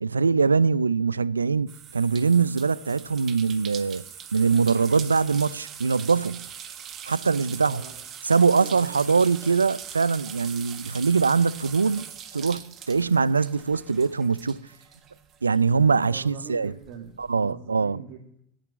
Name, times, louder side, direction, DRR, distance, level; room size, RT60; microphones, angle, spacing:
voice 1, 0.0-4.0 4.3-6.5 7.1-7.8 8.2-12.0 12.3-14.6 15.4-16.7 17.2-18.0, right 5 dB, 90° right, 0.3 m, -22 dB
sound 1, 1.7-15.7 16.0-17.3, right 8 dB, 40° right, 1.4 m, -42 dB
voice 2, 7.5-8.0 8.5-9.3 16.0-18.4, right 7 dB, 55° right, 2.2 m, -43 dB
9.1 x 8.8 x 8.4 m
figure-of-eight pair, 80°, 0 cm